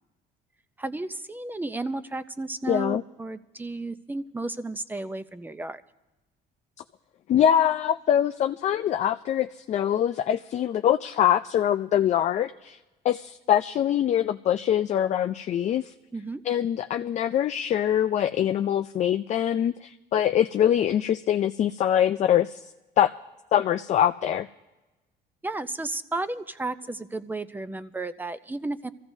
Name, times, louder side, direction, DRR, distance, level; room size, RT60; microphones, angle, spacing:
voice 1, 0.8-5.8 16.1-16.4 25.4-28.9, right 2 dB, 10° right, 13 dB, 0.5 m, -33 dB
voice 2, 2.7-3.0 7.3-12.8 13.0-15.9 16.5-22.6 23.0-23.1 23.5-24.5, left 10 dB, 45° left, 8 dB, 0.4 m, -23 dB
25.5 x 15.0 x 2.7 m, 1.1 s
cardioid pair, 110°, 17 cm